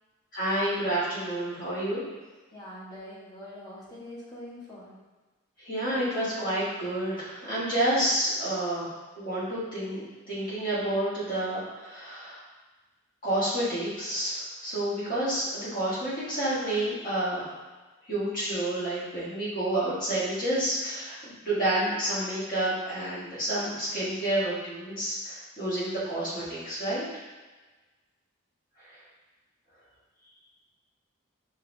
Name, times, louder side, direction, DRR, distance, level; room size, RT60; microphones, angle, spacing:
voice 1, 0.3-2.1 5.6-12.4 13.2-17.4 18.1-27.0, right 1 dB, 40° left, -9 dB, 1.5 m, -29 dB
voice 2, 2.5-4.9, left 1 dB, 15° left, -8 dB, 1.1 m, -43 dB
5.3 x 3.0 x 2.7 m, 1.2 s
head